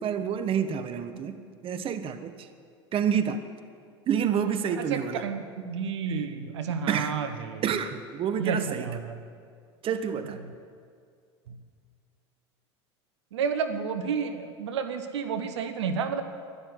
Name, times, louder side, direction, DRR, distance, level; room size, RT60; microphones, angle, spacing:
voice 1, 0.0-2.5 2.9-3.4 4.1-5.2 6.1-6.3 6.9-7.1 7.6-9.0 9.8-10.4, right 8 dB, 40° right, 9 dB, 1.2 m, -28 dB
voice 2, 4.8-7.6 8.4-9.2 10.4-10.5 11.5-11.6 13.3-16.2, right 6 dB, 80° right, 8 dB, 1.2 m, -31 dB
12.5 x 11.0 x 9.8 m, 2.1 s
hypercardioid pair, 85°, 15 cm